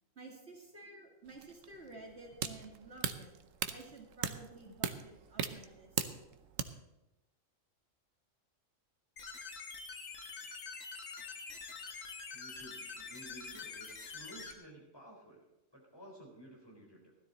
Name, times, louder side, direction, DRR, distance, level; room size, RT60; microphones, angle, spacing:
voice 1, 0.2-3.3 3.7-5.9, right 2 dB, 55° right, 0 dB, 2.3 m, -52 dB
sound 1, 1.3-6.6, right 7 dB, 90° right, 1.2 m, -39 dB
sound 2, 9.2-14.5, left 4 dB, 85° left, 1.8 m, -46 dB
voice 2, 12.3-15.5 15.7-17.1, right 1 dB, 20° left, -2 dB, 4.0 m, -54 dB
16.5 x 12.5 x 4.1 m, 0.96 s
omnidirectional pair, 1.3 m